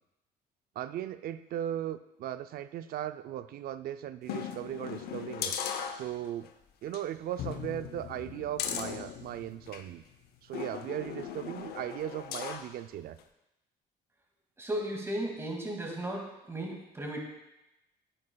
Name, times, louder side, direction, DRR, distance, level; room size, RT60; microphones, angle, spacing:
voice 1, 0.8-5.5 5.9-6.5 6.8-10.0 10.4-13.2, right 11 dB, 60° right, 12 dB, 0.4 m, -37 dB
sound 1, 4.2-6.5 6.9-7.0 7.4-9.9 10.5-12.7 13.2-13.3, left 8 dB, 70° left, 0.7 m, -38 dB
voice 2, 14.6-17.2, right 1 dB, 15° right, 0 dB, 2.2 m, -35 dB
9.9 x 9.7 x 2.3 m, 0.94 s
cardioid pair, 110°, 17 cm